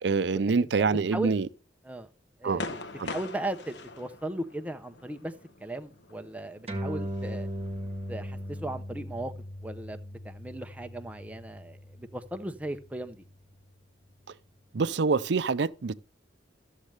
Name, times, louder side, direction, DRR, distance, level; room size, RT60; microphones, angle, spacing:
voice 1, 0.0-1.5 2.4-2.6 3.0-3.1 14.7-15.9, right 4 dB, 70° right, 0.5 m, -26 dB
voice 2, 2.4-2.8 3.0-5.3 5.6-7.5 8.1-9.3 9.6-13.2, right 1 dB, 10° right, 0.5 m, -37 dB
sound 1, 2.5-8.6, left 3 dB, 65° left, 1.1 m, -44 dB
sound 2, 6.7-13.5, equal, 35° right, 1.1 m, -39 dB
13.0 x 7.4 x 3.3 m
head